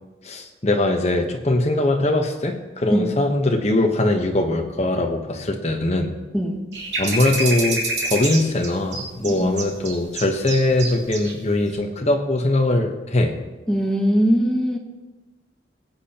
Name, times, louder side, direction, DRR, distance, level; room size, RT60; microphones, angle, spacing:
voice 1, 0.2-6.1 7.0-7.8 8.1-13.3, left 2 dB, 35° left, 3 dB, 1.0 m, -21 dB
sound 1, 6.7-11.3 11.6-11.7, right 2 dB, 65° right, 2.8 m, -27 dB
voice 2, 13.7-14.8, equal, 5° left, 1 dB, 1.0 m, -21 dB
21.0 x 8.5 x 2.9 m, 1.2 s
head